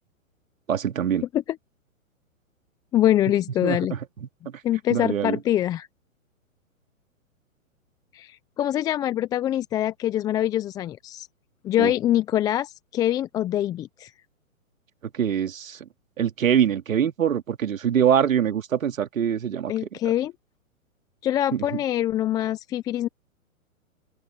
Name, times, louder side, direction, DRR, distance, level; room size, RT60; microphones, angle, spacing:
voice 1, 0.7-1.2 3.6-4.0 4.5-4.6 4.9-5.4 11.8-11.9 15.1-15.8 16.2-19.7 21.5-21.6, right 8 dB, 70° right, 2.4 m, -24 dB
voice 2, 2.9-3.9 4.6-5.9 8.1-11.3 11.6-14.1 19.7-20.3 21.2-23.1, left 12 dB, 10° left, 0.5 m, -24 dB
open air
hypercardioid pair, 125°, 42 cm